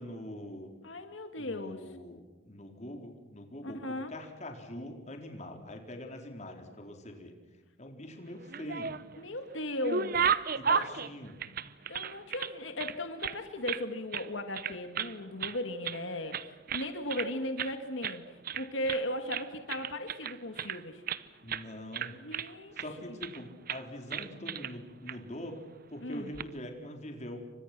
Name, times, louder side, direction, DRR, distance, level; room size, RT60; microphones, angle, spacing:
voice 1, 0.0-0.7 1.4-7.3 7.8-9.0 10.6-11.4 21.4-22.2 22.8-25.6 25.9-27.4, left 1 dB, 40° left, 3 dB, 4.1 m, -43 dB
voice 2, 0.8-1.9 3.6-4.1 9.2-10.9 11.9-21.0 22.2-22.7 23.1-23.2 26.0-26.3, left 1 dB, 85° left, 7 dB, 1.9 m, -37 dB
sound 1, 8.4-9.2 9.6-12.5 12.8-13.8 14.1-14.3 14.5-15.1 15.4-16.0 16.3-17.3 17.6-17.8 18.0-18.2 18.4-19.0 19.3-21.2 21.5-21.7 21.9-22.9 23.2-23.4 23.7-23.8 24.1-24.7 25.1-25.2 26.1-26.5, right 7 dB, 50° right, 0.9 m, -34 dB
29.5 x 25.0 x 6.1 m, 1.1 s
head